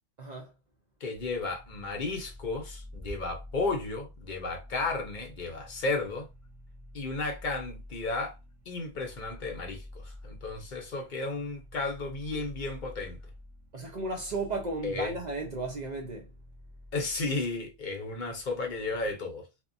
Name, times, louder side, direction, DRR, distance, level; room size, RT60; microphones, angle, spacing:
voice 1, 0.2-0.5 13.7-16.3, right 2 dB, 45° right, 0.6 m, -34 dB
voice 2, 1.0-6.3 6.9-8.4 8.7-13.2 14.8-15.1 16.9-19.4, left 3 dB, 50° left, 0.8 m, -33 dB
sound 1, 1.1-19.1, left 1 dB, 15° right, 1.0 m, -49 dB
2.8 x 2.1 x 2.5 m
omnidirectional pair, 1.2 m